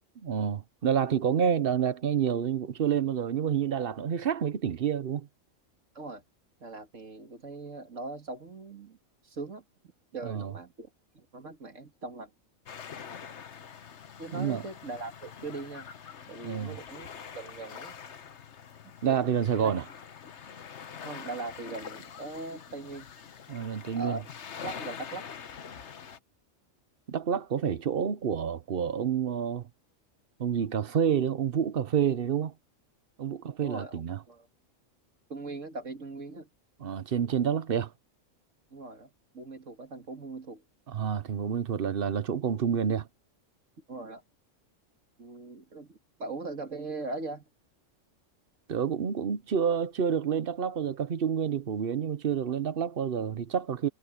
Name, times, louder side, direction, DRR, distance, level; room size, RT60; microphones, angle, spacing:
voice 1, 0.2-5.3 10.2-10.5 14.3-14.6 16.4-16.8 19.0-19.9 23.5-24.2 27.1-29.6 30.4-32.5 33.2-34.2 36.8-37.9 40.9-43.1 48.7-53.9, right 8 dB, 50° right, 1.0 m, -28 dB
voice 2, 6.6-9.0 9.2-9.6 10.1-10.9 11.1-12.3 14.2-15.9 16.3-17.1 17.3-18.0 19.1-19.3 19.6-19.7 21.0-23.1 23.9-24.2 24.6-25.2 33.6-34.5 35.3-36.5 38.7-40.6 43.9-44.2 45.2-47.5, right 3 dB, 75° right, 2.6 m, -40 dB
sound 1, 12.7-26.2, left 7 dB, 65° left, 1.3 m, -45 dB
omnidirectional pair, 1.3 m